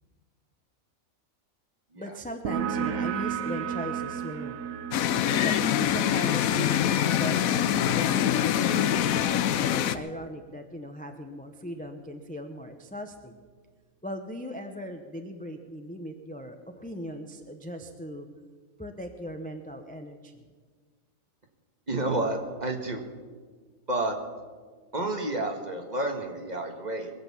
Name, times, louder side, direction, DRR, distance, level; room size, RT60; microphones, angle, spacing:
voice 1, 1.9-4.6 5.3-9.1 9.6-13.4 14.0-18.3 18.8-20.4, equal, 5° left, 5 dB, 0.8 m, -39 dB
sound 1, 2.5-9.7, right 8 dB, 80° right, 1.1 m, -35 dB
sound 2, 4.9-9.9, left 10 dB, 90° left, 1.1 m, -24 dB
voice 2, 21.9-23.0 23.9-24.2 24.9-27.1, right 2 dB, 30° right, 3 dB, 1.7 m, -30 dB
22.5 x 8.0 x 7.3 m, 1.5 s
omnidirectional pair, 1.4 m